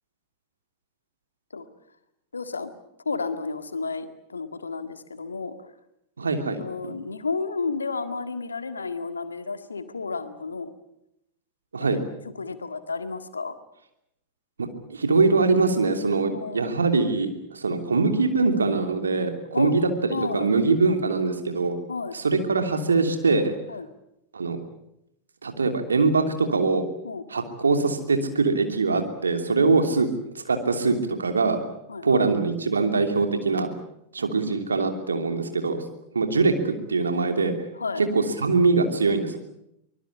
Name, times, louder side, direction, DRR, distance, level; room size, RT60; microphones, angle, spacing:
voice 1, 2.3-2.7 3.1-5.5 6.6-10.7 11.8-13.5 16.3-16.7 19.5-19.7 20.1-20.5 21.9-22.2 23.7-23.9 27.0-27.2 29.9-30.0 31.9-32.2 37.8-38.0, left 4 dB, 75° left, 10 dB, 1.9 m, -32 dB
voice 2, 6.2-6.6 11.7-12.0 14.9-19.8 20.3-21.7 22.1-23.5 24.3-24.6 25.4-26.8 27.3-30.1 30.4-31.6 32.0-33.7 34.1-35.8 36.1-37.5 38.0-39.4, right 4 dB, 75° right, 6 dB, 3.0 m, -23 dB
24.5 x 20.5 x 8.4 m, 0.81 s
figure-of-eight pair, 90°, 0 cm